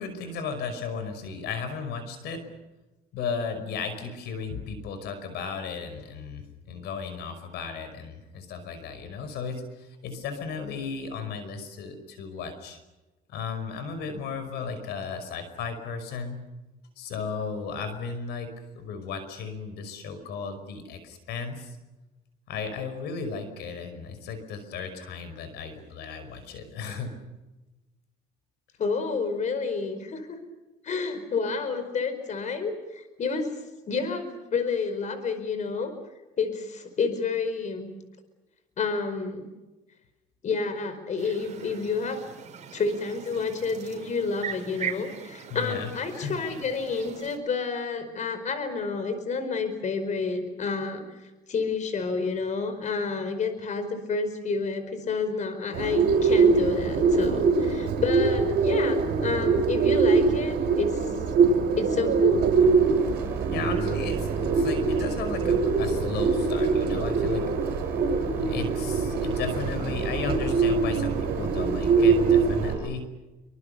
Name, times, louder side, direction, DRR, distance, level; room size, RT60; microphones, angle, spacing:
voice 1, 0.0-2.4 3.1-12.8 13.3-16.4 17.0-21.8 22.5-27.1 45.5-46.4 63.5-67.5 68.4-73.1, left 5 dB, 80° left, 9 dB, 5.5 m, -35 dB
voice 2, 28.8-30.4 30.8-33.5 33.9-35.9 36.4-37.9 38.8-39.5 40.4-42.2 42.7-61.1 61.7-62.5, left 4 dB, 45° left, 9 dB, 5.0 m, -29 dB
sound 1, 41.2-47.4, right 8 dB, 45° right, 6.1 m, -40 dB
Bird, 55.7-72.7, right 4 dB, 75° right, 5.9 m, -23 dB
sound 2, 62.5-72.9, right 2 dB, 15° right, 5.2 m, -38 dB
28.0 x 25.5 x 6.9 m, 1.1 s
cardioid pair, 110°, 17 cm